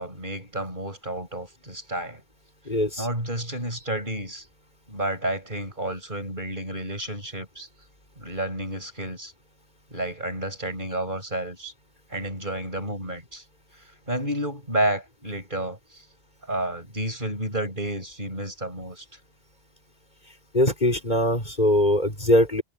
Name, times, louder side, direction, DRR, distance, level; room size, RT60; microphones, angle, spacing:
voice 1, 0.0-2.2 3.0-4.5 4.9-7.7 8.2-9.3 9.9-11.7 12.1-13.4 14.1-16.1 16.4-19.1, right 1 dB, 50° right, 7.1 m, -31 dB
voice 2, 2.7-3.1 20.5-22.6, left 1 dB, 45° left, 5.4 m, -21 dB
omnidirectional pair, 1.1 m